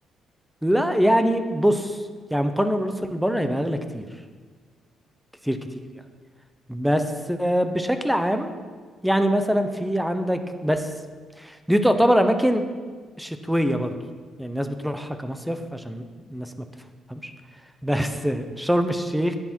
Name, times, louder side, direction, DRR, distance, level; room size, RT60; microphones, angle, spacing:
voice 1, 0.6-2.0 2.3-4.1 5.5-5.6 6.7-7.0 7.3-8.5 9.0-10.9 11.4-12.6 13.2-13.9 14.4-16.5 17.1-17.3 17.8-19.4, equal, 5° right, 8 dB, 0.9 m, -23 dB
10.5 x 9.8 x 4.5 m, 1.5 s
cardioid pair, 90°, 0 cm